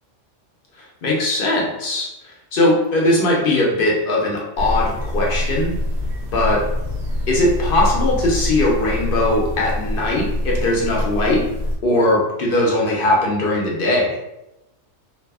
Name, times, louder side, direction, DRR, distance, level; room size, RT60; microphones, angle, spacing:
voice 1, 1.0-2.1 2.5-5.7 6.3-6.6 7.3-11.4 11.8-14.2, left 1 dB, 55° left, -3 dB, 0.7 m, -19 dB
sound 1, 4.6-11.8, left 1 dB, 60° right, 0.5 m, -24 dB
2.6 x 2.4 x 2.3 m, 0.91 s
omnidirectional pair, 1.3 m